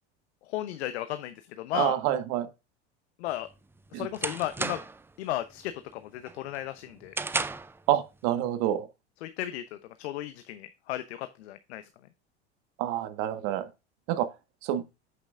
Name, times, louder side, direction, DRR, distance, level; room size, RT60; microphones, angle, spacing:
voice 1, 0.4-2.0 3.2-3.5 3.9-4.8 5.2-7.1 9.2-11.8, left 14 dB, 75° left, 0.8 m, -35 dB
voice 2, 1.7-2.5 3.9-4.1 7.9-8.9 12.8-13.7 14.1-14.3 14.6-14.8, right 12 dB, 60° right, 1.6 m, -27 dB
sound 1, 3.3-5.1 5.5-5.9 6.3-7.8, right 3 dB, 5° right, 0.4 m, -34 dB
8.3 x 6.8 x 2.5 m
hypercardioid pair, 95°, 33 cm